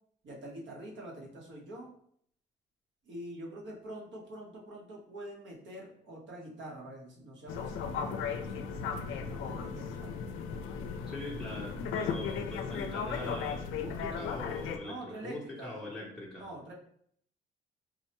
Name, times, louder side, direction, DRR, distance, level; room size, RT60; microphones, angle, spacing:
voice 1, 0.2-1.9 3.0-10.1 14.8-16.0 16.3-16.7, right 1 dB, 65° right, -2 dB, 1.2 m, -45 dB
sound 1, 7.5-14.8, left 6 dB, 90° left, 0.4 m, -36 dB
voice 2, 11.1-16.5, left 1 dB, ahead, -5 dB, 0.7 m, -42 dB
4.4 x 2.2 x 2.9 m, 0.65 s
cardioid pair, 90°, 20 cm